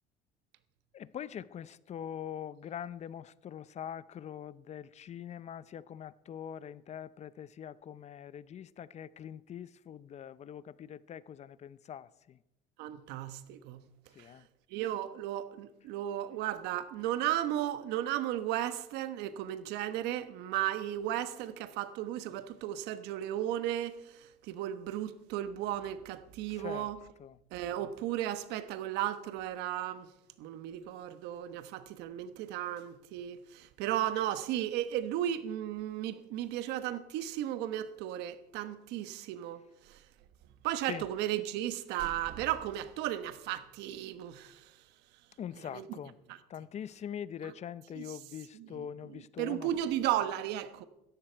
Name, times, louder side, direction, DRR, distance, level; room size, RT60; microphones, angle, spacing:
voice 1, 0.9-12.4 14.1-14.5 26.5-26.9 27.2-27.4 40.9-41.1 45.4-46.1 46.5-49.7, left 9 dB, 40° left, 0.6 m, -43 dB
voice 2, 12.8-13.9 14.2-14.3 14.7-27.0 27.5-30.1 30.4-40.0 40.6-44.8 45.7-46.0 47.4-47.5 48.0-48.1 48.6-50.8, right 12 dB, 80° right, 1.2 m, -35 dB
17.0 x 14.0 x 4.6 m
cardioid pair, 105°, 17 cm